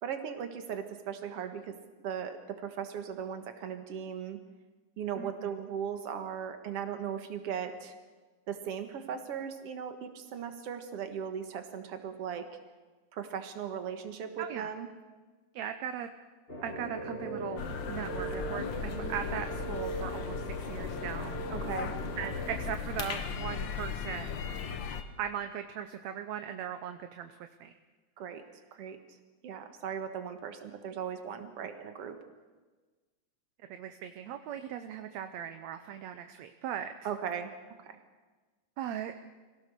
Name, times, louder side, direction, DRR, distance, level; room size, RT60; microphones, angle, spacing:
voice 1, 0.0-1.8 2.0-4.4 5.0-7.9 8.5-12.5 13.1-14.9 21.5-21.9 28.2-28.4 28.7-29.2 29.4-32.2 37.0-37.5 37.8-38.0, right 8 dB, 55° right, 7 dB, 2.3 m, -38 dB
voice 2, 5.2-5.6 14.4-14.7 15.5-16.1 16.6-17.6 17.9-21.4 22.2-24.4 25.2-27.7 33.7-36.9 38.8-39.1, right 9 dB, 70° right, 8 dB, 2.0 m, -39 dB
sound 1, 16.5-22.7, equal, 20° left, 2.0 m, -39 dB
sound 2, 17.6-25.0, left 6 dB, 60° left, 1.3 m, -37 dB
25.5 x 17.0 x 6.6 m, 1.3 s
omnidirectional pair, 3.5 m